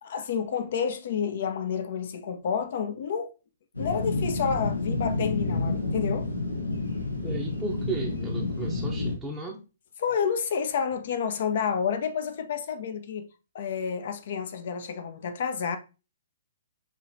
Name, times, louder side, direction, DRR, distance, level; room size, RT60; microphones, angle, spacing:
voice 1, 0.0-3.3 3.8-6.3 10.0-13.3 13.5-15.8, left 7 dB, 55° left, 0.6 m, -29 dB
sound 1, 3.7-9.1, left 3 dB, 85° left, 1.1 m, -29 dB
voice 2, 7.2-9.7, right 3 dB, 5° right, 0.7 m, -35 dB
6.1 x 2.9 x 2.6 m
figure-of-eight pair, 120°, 0 cm